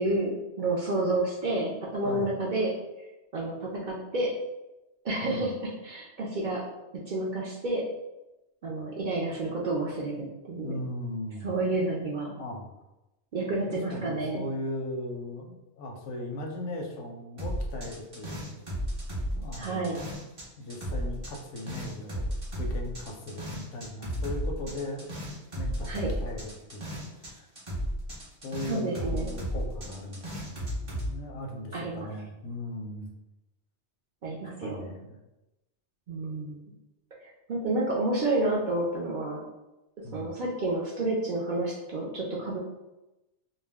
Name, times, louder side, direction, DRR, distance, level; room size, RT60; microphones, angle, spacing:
voice 1, 0.0-2.8 3.3-4.3 5.0-6.6 7.1-7.8 8.6-10.8 11.4-12.3 13.3-14.4 19.6-20.0 25.8-26.1 28.7-29.3 31.7-32.1 34.2-34.9 36.1-36.6 37.2-39.4 40.1-42.6, right 2 dB, 60° right, -3 dB, 0.5 m, -30 dB
voice 2, 10.6-11.5 12.4-12.7 13.7-18.6 19.3-19.9 20.6-22.2 22.6-25.1 25.5-27.5 28.4-33.1 34.6-35.1 40.0-40.3, left 1 dB, 90° left, 2 dB, 0.9 m, -38 dB
sound 1, 17.4-20.4 20.7-27.3 27.5-31.1, equal, 30° right, 0.8 m, -34 dB
2.4 x 2.1 x 3.4 m, 0.99 s
omnidirectional pair, 1.2 m